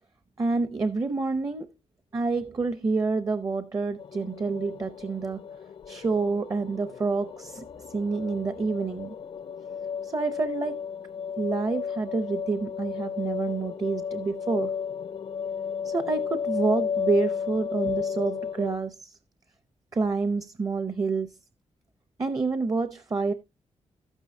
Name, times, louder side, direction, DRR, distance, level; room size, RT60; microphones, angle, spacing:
voice 1, 0.4-1.7 2.1-5.4 5.9-7.6 7.9-9.1 10.0-10.8 11.4-14.7 15.8-19.1 19.9-21.3 22.2-23.3, right 4 dB, 30° right, 0.6 m, -28 dB
sound 1, 4.0-18.8, left 7 dB, 50° left, 0.4 m, -33 dB
12.0 x 9.1 x 2.6 m
wide cardioid pair, 135°, 12 cm